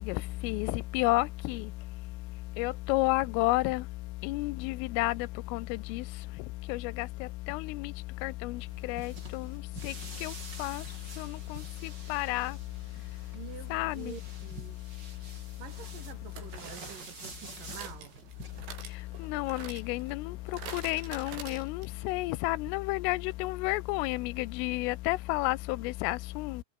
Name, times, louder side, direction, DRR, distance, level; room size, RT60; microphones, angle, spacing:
voice 1, 0.0-1.6 2.6-3.8 4.2-6.0 6.7-7.1 7.5-7.9 8.2-8.6 8.9-9.5 9.8-9.9 10.2-10.3 10.6-10.8 11.2-11.6 12.1-12.5 13.7-14.1 19.2-20.3 20.7-26.6, left 21 dB, 80° left, 3.4 m, -31 dB
sound 1, 8.6-18.6, right 3 dB, 20° right, 5.9 m, -48 dB
voice 2, 13.3-14.9 15.6-18.2, right 9 dB, 50° right, 3.3 m, -47 dB
sound 2, 15.1-15.2 16.4-22.1 22.4-22.5 22.7-22.8, right 7 dB, 70° right, 7.2 m, -47 dB
omnidirectional pair, 5.8 m